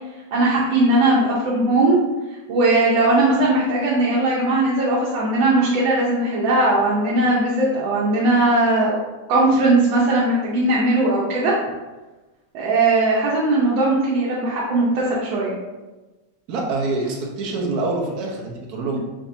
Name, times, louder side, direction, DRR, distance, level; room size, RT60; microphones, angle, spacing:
voice 1, 0.3-2.0 2.5-9.0 9.3-11.5 12.5-15.5, right 2 dB, 90° right, -6 dB, 1.6 m, -19 dB
voice 2, 16.5-19.0, right 3 dB, 60° right, -1 dB, 1.2 m, -25 dB
5.6 x 3.4 x 2.6 m, 1.2 s
omnidirectional pair, 2.0 m